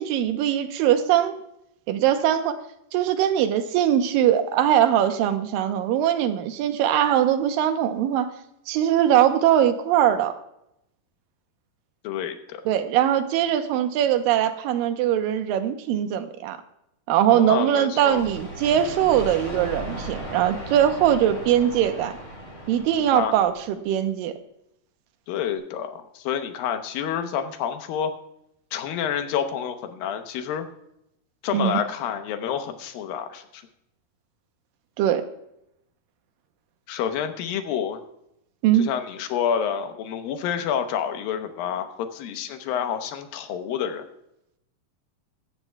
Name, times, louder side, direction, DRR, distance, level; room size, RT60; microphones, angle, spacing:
voice 1, 0.0-1.4 1.9-2.6 2.9-8.3 8.7-10.3 12.7-16.6 17.1-22.1 22.7-24.4 31.5-31.8 35.0-35.3 38.6-38.9, right 10 dB, 90° right, 8 dB, 2.5 m, -21 dB
voice 2, 12.0-12.6 17.3-18.2 23.1-23.3 25.3-28.1 28.7-30.7 31.4-33.6 36.9-38.0 38.8-44.1, left 8 dB, 85° left, 8 dB, 2.7 m, -28 dB
sound 1, 18.1-23.8, right 1 dB, 25° left, 3.1 m, -37 dB
15.5 x 13.5 x 2.3 m, 0.81 s
omnidirectional pair, 4.0 m